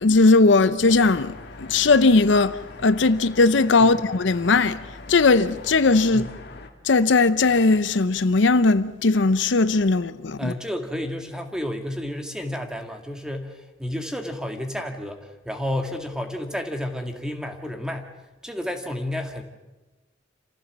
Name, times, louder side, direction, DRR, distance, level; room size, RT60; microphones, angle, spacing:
voice 1, 0.0-4.8 5.1-6.3 6.8-10.5, left 3 dB, 75° left, 0.7 m, -18 dB
sound 1, 0.8-6.7, left 2 dB, 60° left, 2.0 m, -42 dB
voice 2, 10.4-18.1 18.4-19.4, left 1 dB, 5° right, 2.0 m, -31 dB
27.5 x 15.5 x 7.3 m
head